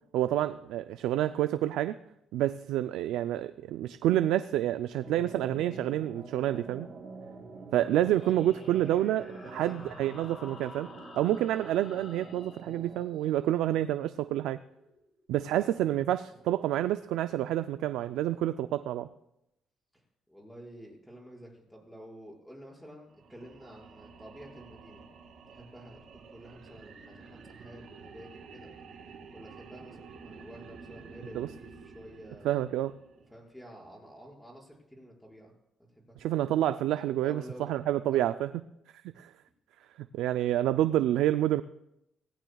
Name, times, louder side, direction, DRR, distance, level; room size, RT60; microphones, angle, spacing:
voice 1, 0.1-1.9 2.3-6.9 7.7-14.6 15.3-19.1 31.3-31.5 32.4-32.9 36.2-38.5 39.2-39.3 40.1-41.6, right 13 dB, 90° right, 11 dB, 0.4 m, -28 dB
sound 1, 5.0-13.0, right 3 dB, 50° right, 3.7 m, -46 dB
voice 2, 7.9-8.5 9.4-9.7 15.5-16.0 20.3-25.0 25.5-28.7 29.3-32.5 33.3-35.5 35.9-36.4 37.2-37.7 38.1-38.4, equal, 5° left, -2 dB, 5.6 m, -50 dB
sound 2, 8.0-15.2, left 3 dB, 50° left, 7.4 m, -53 dB
sound 3, 23.1-33.4, right 5 dB, 70° right, 2.2 m, -50 dB
23.5 x 16.5 x 2.3 m, 0.83 s
cardioid pair, 90°, 0 cm